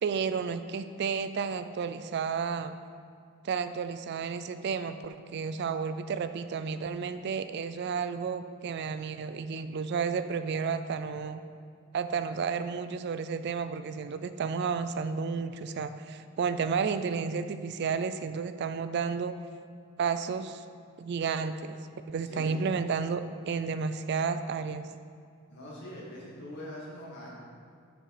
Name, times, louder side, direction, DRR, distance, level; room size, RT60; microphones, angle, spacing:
voice 1, 0.0-2.7 3.4-11.4 11.9-19.3 20.0-20.6 21.0-21.7 22.1-23.2 23.5-24.9, right 5 dB, 50° right, 10 dB, 0.3 m, -32 dB
voice 2, 22.2-22.7 25.5-27.3, equal, 55° left, -5 dB, 2.2 m, -43 dB
6.6 x 6.3 x 4.9 m, 2.2 s
head